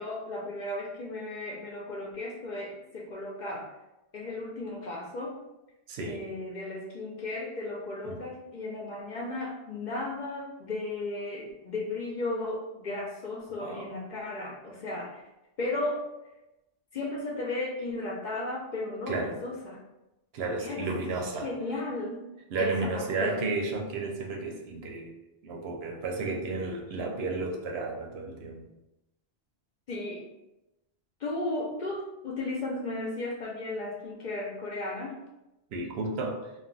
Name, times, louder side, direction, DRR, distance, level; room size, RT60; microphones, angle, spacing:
voice 1, 0.0-3.7 4.1-5.4 6.0-15.2 15.6-16.0 16.9-19.8 20.6-20.9 21.4-23.4 29.9-30.3 31.2-35.2, left 2 dB, 55° left, -2 dB, 0.6 m, -35 dB
voice 2, 5.9-6.2 8.0-8.2 13.6-13.9 19.1-19.3 20.3-21.5 22.5-25.1 25.4-28.6 35.7-36.4, right 3 dB, 75° right, 1 dB, 0.8 m, -32 dB
2.3 x 2.2 x 3.8 m, 0.94 s
omnidirectional pair, 1.1 m